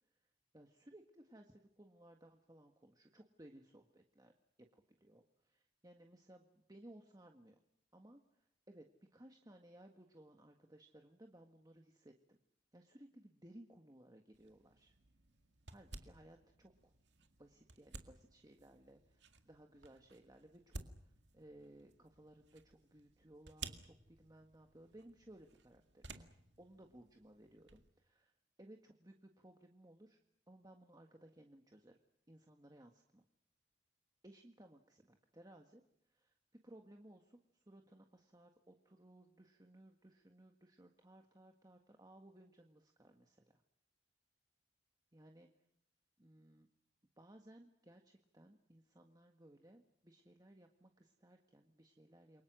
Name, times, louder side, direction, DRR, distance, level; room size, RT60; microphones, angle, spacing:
voice 1, 0.5-4.3 4.6-7.6 7.9-12.4 12.7-14.9 15.7-16.9 17.4-26.3 26.6-28.3 28.6-30.2 30.5-32.0 32.3-33.2 34.2-36.4 36.6-43.6 45.1-45.5 46.2-46.7 47.2-52.4, right 1 dB, 20° right, 4 dB, 1.7 m, -61 dB
sound 1, 14.3-27.9, right 4 dB, 85° right, 2.1 m, -56 dB
28.5 x 23.5 x 6.3 m, 0.76 s
head